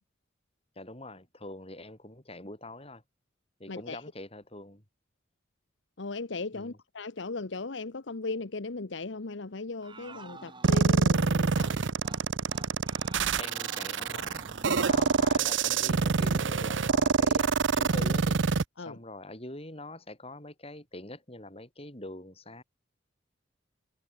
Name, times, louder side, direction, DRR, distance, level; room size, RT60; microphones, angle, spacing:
voice 1, 0.8-3.0 3.6-4.8 6.5-6.8 13.4-18.4 18.9-22.6, left 1 dB, 30° left, 7.1 m, -44 dB
voice 2, 3.7-4.0 6.0-11.7 18.8-19.0, left 3 dB, 75° left, 1.0 m, -37 dB
sound 1, 9.8-11.3 11.6-11.8 12.0-12.2 12.5-15.3, right 2 dB, 25° right, 6.0 m, -48 dB
sound 2, 10.6-18.6, right 4 dB, 80° right, 0.7 m, -26 dB
head